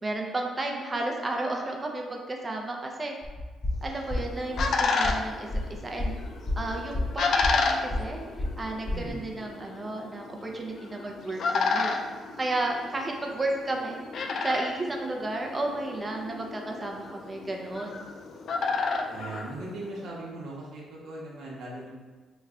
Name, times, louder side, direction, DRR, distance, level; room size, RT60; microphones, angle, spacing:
voice 1, 0.0-3.1 3.8-5.5 5.8-6.2 6.6-8.2 8.6-12.0 12.4-14.0 14.4-18.0, right 2 dB, 25° right, 1 dB, 0.5 m, -32 dB
sound 1, 3.2-9.2, left 1 dB, 20° left, 0.6 m, -32 dB
sound 2, 3.9-20.2, left 4 dB, 60° left, 0.3 m, -32 dB
voice 2, 8.9-9.3 19.1-21.9, right 2 dB, 70° right, -4 dB, 0.9 m, -39 dB
3.0 x 2.2 x 3.6 m, 1.3 s
cardioid pair, 90°, 0 cm